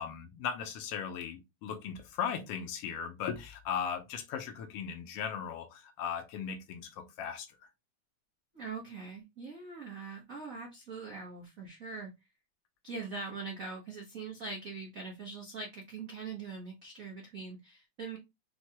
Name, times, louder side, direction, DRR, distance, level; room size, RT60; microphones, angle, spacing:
voice 1, 0.0-7.5, left 7 dB, 75° left, 1.5 m, -37 dB
voice 2, 8.5-12.1 12.8-18.2, right 4 dB, 75° right, 0.7 m, -42 dB
6.2 x 2.3 x 2.9 m
omnidirectional pair, 3.4 m